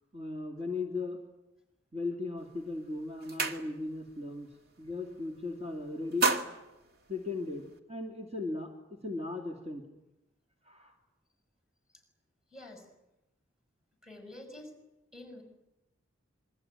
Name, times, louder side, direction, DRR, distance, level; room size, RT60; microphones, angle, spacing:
voice 1, 0.1-1.2 1.9-4.5 4.8-6.3 7.1-9.8 10.6-10.9, left 3 dB, 30° right, 1 dB, 2.7 m, -37 dB
sound 1, 2.4-2.6 2.9-4.1 4.5-4.7 5.0-5.6 5.9-7.8, right 3 dB, 50° right, 2.1 m, -33 dB
voice 2, 12.5-12.9 14.0-14.8 15.1-15.4, left 1 dB, 5° right, 4 dB, 5.9 m, -48 dB
27.5 x 23.0 x 9.2 m, 0.96 s
head